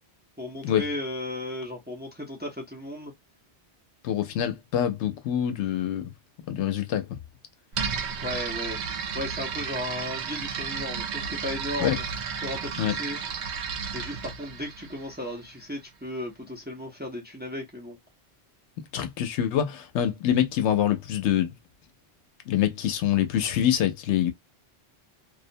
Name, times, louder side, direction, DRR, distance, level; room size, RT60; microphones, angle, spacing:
voice 1, 0.4-3.1 8.2-8.8 9.1-12.0 12.4-13.2 13.9-18.0, left 1 dB, 10° right, 0.5 m, -35 dB
voice 2, 4.0-6.1 6.4-7.2 11.8-12.0 12.8-12.9 18.9-21.5 22.5-24.3, left 10 dB, 90° left, 0.9 m, -25 dB
sound 1, 7.7-15.5, right 6 dB, 80° right, 0.9 m, -33 dB
2.4 x 2.0 x 2.6 m
omnidirectional pair, 1.1 m